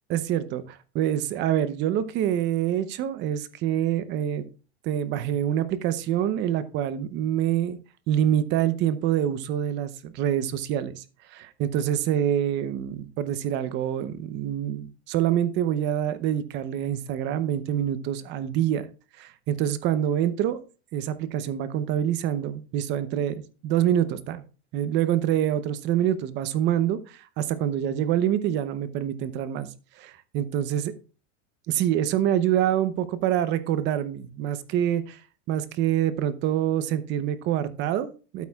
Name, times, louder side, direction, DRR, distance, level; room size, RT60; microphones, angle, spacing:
voice 1, 0.1-4.5 4.8-7.8 8.1-11.0 11.3-18.8 19.2-20.6 20.9-24.4 24.7-29.7 30.0-30.9 31.7-35.2 35.5-38.5, right 10 dB, 35° right, 13 dB, 0.8 m, -26 dB
12.5 x 8.3 x 2.4 m, 0.35 s
supercardioid pair, 155°, 33 cm